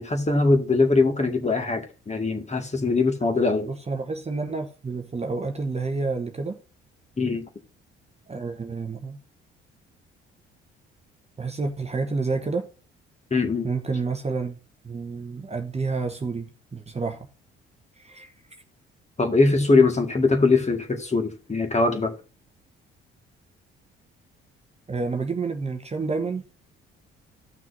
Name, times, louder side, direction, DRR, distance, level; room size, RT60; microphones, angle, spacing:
voice 1, 0.0-3.7 7.2-7.4 13.3-13.7 19.2-22.1, left 3 dB, 20° left, 1.9 m, -21 dB
voice 2, 3.6-6.6 8.3-9.2 11.4-12.6 13.6-14.6 14.8-17.3 18.0-18.3 24.9-26.4, right 4 dB, 20° right, 1.1 m, -29 dB
15.0 x 6.0 x 2.7 m
figure-of-eight pair, 45°, 30 cm